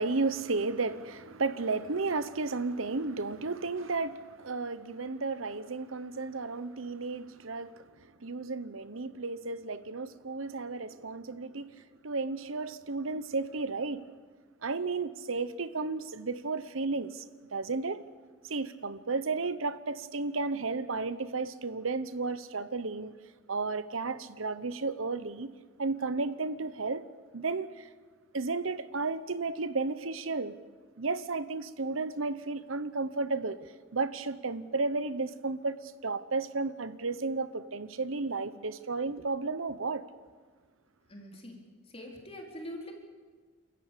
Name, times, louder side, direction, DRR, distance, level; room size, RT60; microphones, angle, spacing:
voice 1, 0.0-14.0 14.6-17.2 17.5-18.0 18.5-23.1 23.5-25.5 25.8-27.0 27.3-27.9 28.3-30.6 31.0-40.0, right 3 dB, 85° right, 1.0 m, -33 dB
voice 2, 41.1-41.6 41.9-42.9, equal, 30° left, 4.1 m, -43 dB
29.5 x 14.0 x 8.5 m
head